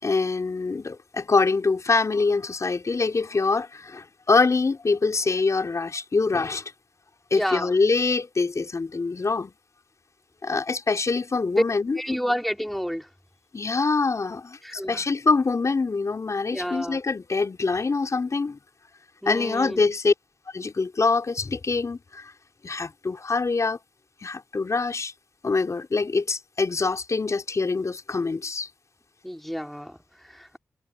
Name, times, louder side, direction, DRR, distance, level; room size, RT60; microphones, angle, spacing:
voice 1, 0.0-6.7 7.3-9.5 10.4-12.2 13.5-18.6 19.3-20.1 20.5-22.3 22.6-23.8 24.2-25.1 25.4-28.7, left 4 dB, 55° left, 4.2 m, -24 dB
voice 2, 7.3-7.7 11.6-11.7 12.0-13.1 14.6-15.0 16.5-17.0 19.2-19.9 29.2-30.6, equal, ahead, 2.9 m, -29 dB
cardioid pair, 50°, 6 cm